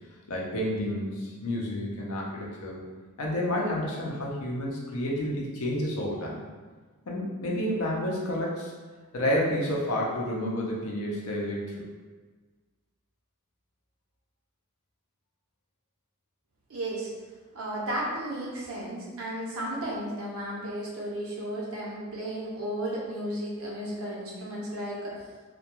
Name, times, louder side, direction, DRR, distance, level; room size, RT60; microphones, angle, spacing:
voice 1, 0.3-2.8 3.2-6.4 7.1-8.7 9.1-11.8, left 1 dB, 75° left, -3 dB, 0.6 m, -30 dB
voice 2, 16.7-17.1 17.5-25.1, right 1 dB, 75° right, -4 dB, 0.7 m, -34 dB
2.2 x 2.2 x 2.8 m, 1.4 s
head